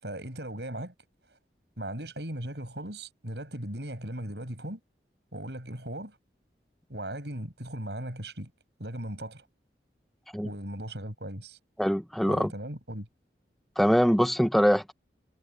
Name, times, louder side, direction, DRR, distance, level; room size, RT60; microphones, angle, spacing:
voice 1, 0.0-0.9 1.8-4.8 5.3-6.2 6.9-8.5 8.8-9.4 10.4-11.6 12.3-13.1, right 1 dB, 70° right, 7.7 m, -37 dB
voice 2, 11.8-12.5 13.8-14.9, equal, ahead, 0.7 m, -23 dB
head